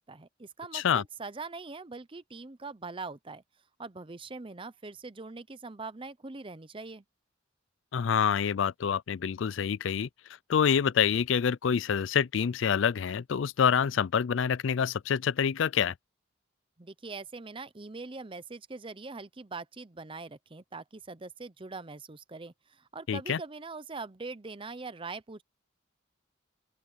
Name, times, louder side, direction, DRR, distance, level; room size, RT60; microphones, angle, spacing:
voice 1, 0.1-3.4 3.8-7.0 16.8-25.4, right 3 dB, 25° right, 0.7 m, -42 dB
voice 2, 0.7-1.0 7.9-10.1 10.5-15.9 23.1-23.4, left 7 dB, 70° left, 0.4 m, -27 dB
open air
head